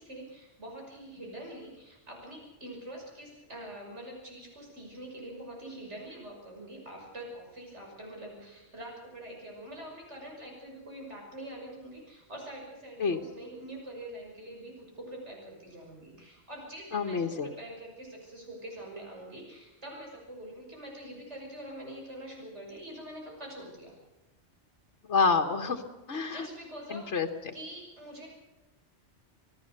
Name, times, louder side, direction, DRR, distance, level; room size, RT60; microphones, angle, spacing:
voice 1, 0.0-23.9 26.3-27.1 27.5-28.3, right 1 dB, 80° right, 0 dB, 6.3 m, -45 dB
voice 2, 16.9-17.5 25.1-25.8 26.1-26.5 26.9-27.5, left 5 dB, 80° left, 3 dB, 1.7 m, -28 dB
26.5 x 18.0 x 6.7 m, 1.0 s
omnidirectional pair, 1.2 m